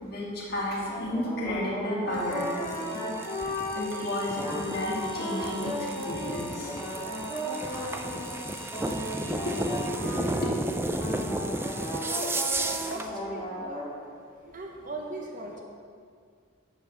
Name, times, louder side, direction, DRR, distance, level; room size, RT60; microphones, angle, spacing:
voice 1, 0.0-3.1 3.7-6.7 7.5-7.9 9.3-9.6 9.9-11.4, left 1 dB, 45° left, -5 dB, 2.1 m, -33 dB
sound 1, 0.8-4.0 4.3-10.7 10.9-13.9, left 1 dB, 25° left, 1.9 m, -35 dB
sound 2, 2.1-9.9, right 1 dB, 5° left, 1.5 m, -45 dB
sound 3, 2.1-13.1, right 2 dB, 10° right, 0.3 m, -34 dB
voice 2, 12.0-12.5 12.9-13.9 14.5-15.6, right 2 dB, 40° right, 1 dB, 0.9 m, -38 dB
8.0 x 6.9 x 5.7 m, 2.2 s
head